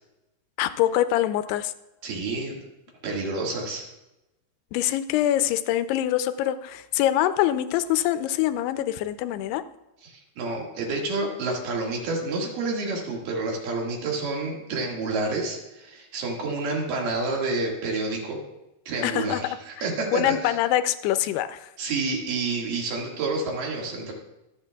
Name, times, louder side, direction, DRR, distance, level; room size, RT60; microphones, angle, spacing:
voice 1, 0.6-1.7 4.7-9.6 19.0-19.4 20.1-21.7, left 13 dB, 80° left, 12 dB, 2.5 m, -24 dB
voice 2, 2.0-2.6 3.0-3.8 10.0-18.4 18.9-20.6 21.8-24.1, right 3 dB, 60° right, -1 dB, 3.2 m, -29 dB
24.0 x 8.2 x 2.3 m, 0.96 s
omnidirectional pair, 4.8 m